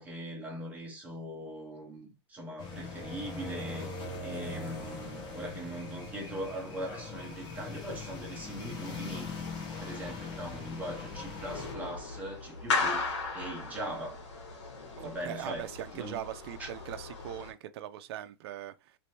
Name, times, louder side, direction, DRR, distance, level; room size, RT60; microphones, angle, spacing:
voice 1, 0.0-3.9 4.2-9.3 9.8-14.3 14.9-16.2 16.6-16.7, right 1 dB, 10° right, 1.3 m, -40 dB
sound 1, 2.6-11.7, left 3 dB, 30° left, 1.2 m, -41 dB
sound 2, 7.9-17.5, left 4 dB, 80° left, 1.6 m, -38 dB
voice 2, 15.0-19.0, right 12 dB, 60° right, 0.4 m, -41 dB
3.2 x 3.0 x 2.9 m
supercardioid pair, 140°, 15 cm